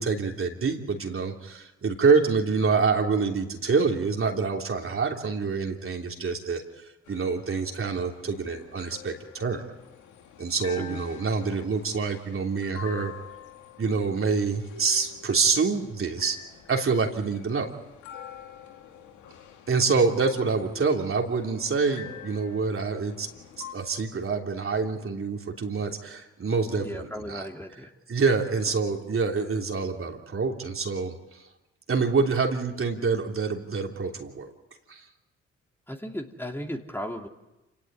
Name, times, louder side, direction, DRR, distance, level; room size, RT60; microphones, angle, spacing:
voice 1, 0.0-6.6 7.1-9.7 10.4-13.1 13.8-16.4 16.7-17.7 19.7-23.3 23.7-27.4 28.1-31.2 31.9-34.5 34.9-35.0, right 4 dB, 45° right, 2 dB, 3.2 m, -26 dB
sound 1, 7.1-23.7, left 9 dB, 80° left, 2.1 m, -47 dB
voice 2, 26.8-27.9 35.9-37.3, equal, 10° left, 2 dB, 2.7 m, -36 dB
27.5 x 18.0 x 8.9 m, 1.0 s
supercardioid pair, 50°, 29 cm